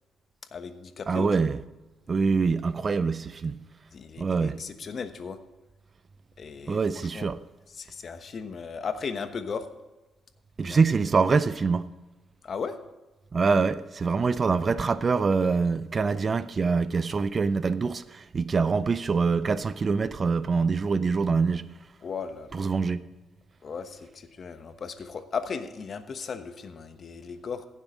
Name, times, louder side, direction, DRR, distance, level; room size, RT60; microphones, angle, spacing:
voice 1, 0.5-1.3 3.9-5.4 6.4-7.3 7.7-9.7 10.6-10.8 12.4-12.8 22.0-22.7 23.6-27.7, left 5 dB, 50° left, 1.1 m, -36 dB
voice 2, 1.1-1.6 2.1-3.6 4.2-4.6 6.7-7.4 10.6-11.9 13.3-21.7 22.5-23.1, right 4 dB, 35° right, 0.5 m, -25 dB
16.0 x 7.4 x 5.1 m
cardioid pair, 90°, 0 cm